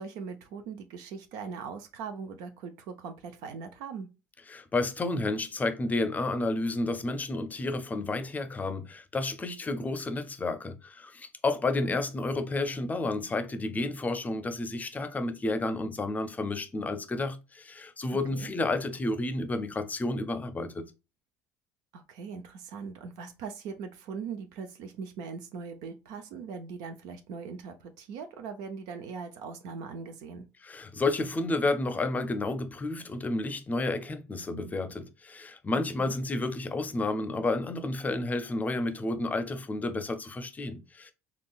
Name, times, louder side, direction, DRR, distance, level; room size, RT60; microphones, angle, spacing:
voice 1, 0.0-4.1 11.9-12.0 18.3-18.5 21.9-30.5 36.0-36.2, right 5 dB, 70° right, 0.5 m, -40 dB
voice 2, 4.5-20.8 30.6-41.1, left 2 dB, 25° left, 0.5 m, -31 dB
3.7 x 2.3 x 2.3 m
hypercardioid pair, 75°, 7 cm